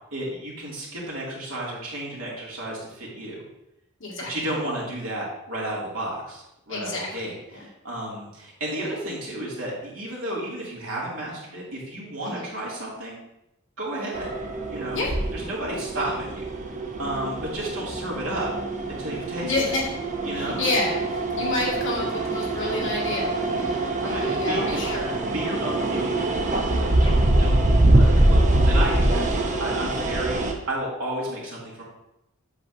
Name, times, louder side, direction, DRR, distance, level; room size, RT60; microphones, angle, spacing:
voice 1, 0.1-3.4 4.3-13.2 13.8-14.3 14.7-15.0 15.3-18.5 19.0-19.5 20.2-20.6 24.0-24.8 25.3-29.3 29.6-31.8, right 1 dB, 70° right, -5 dB, 2.6 m, -32 dB
voice 2, 4.0-4.3 6.7-7.1 7.5-7.7 12.2-12.5 14.9-15.1 19.4-19.8 20.3-25.2 27.0-27.1, left 2 dB, 60° left, -4 dB, 2.1 m, -29 dB
sound 1, 14.1-30.5, right 1 dB, 35° right, 0.8 m, -24 dB
8.0 x 6.8 x 2.7 m, 0.86 s
head